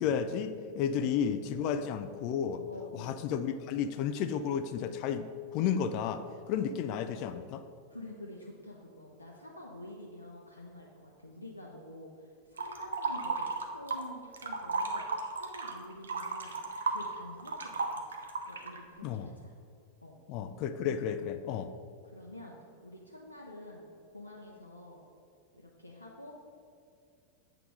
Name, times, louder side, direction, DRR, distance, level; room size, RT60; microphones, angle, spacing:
voice 1, 0.0-2.6 2.9-5.3 5.5-6.2 6.5-7.6 19.0-19.3 20.3-21.7, left 8 dB, 45° left, 9 dB, 0.4 m, -32 dB
voice 2, 2.7-3.2 7.9-18.0 18.5-19.5 20.0-20.2 22.0-22.6 22.8-23.8 24.1-25.0 25.5-26.4, left 1 dB, 85° left, -2 dB, 0.6 m, -48 dB
sound 1, 12.6-14.1 14.3-18.8, right 4 dB, 70° right, 0.7 m, -34 dB
8.0 x 3.9 x 4.7 m, 2.4 s
figure-of-eight pair, 90°, 0 cm